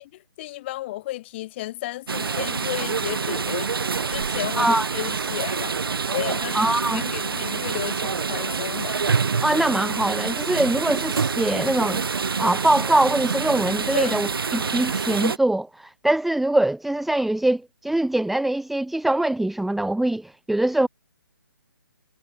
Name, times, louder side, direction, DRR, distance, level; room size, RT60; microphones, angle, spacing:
voice 1, 0.4-3.7 4.1-5.7 6.1-6.7 6.9-9.0 13.9-14.2, left 16 dB, 30° left, 4.7 m, -32 dB
sound 1, 2.1-15.4, right 5 dB, 75° right, 0.9 m, -26 dB
voice 2, 4.6-4.9 6.5-7.1 9.4-12.0 12.4-20.9, right 1 dB, ahead, 1.4 m, -23 dB
hypercardioid pair, 155°, 12 cm